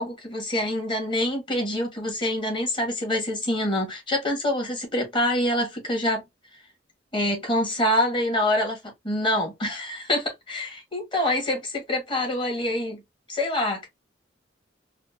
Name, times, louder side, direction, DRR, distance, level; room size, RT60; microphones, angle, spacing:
voice 1, 0.0-6.2 7.1-13.0 13.3-13.9, left 1 dB, 30° left, 1.5 m, -26 dB
4.2 x 2.2 x 2.6 m
head